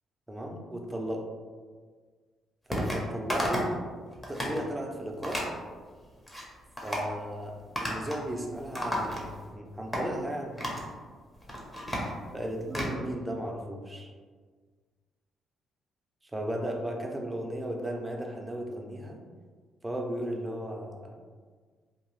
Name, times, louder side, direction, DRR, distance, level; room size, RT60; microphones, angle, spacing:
voice 1, 0.3-1.3 2.7-3.7 4.3-5.4 6.8-10.6 12.3-14.1 16.2-19.2 19.8-21.2, right 1 dB, 15° right, 1 dB, 0.5 m, -35 dB
sound 1, 2.7-3.0 3.3-3.8 4.1-4.6 5.2-5.5 6.0-6.4 6.8-7.1 7.8-8.3 8.5-9.5 9.9-10.1 10.6-10.9 11.3-12.9, equal, 15° left, 0.7 m, -33 dB
2.8 x 2.2 x 3.1 m, 1.5 s
cardioid pair, 90°, 0 cm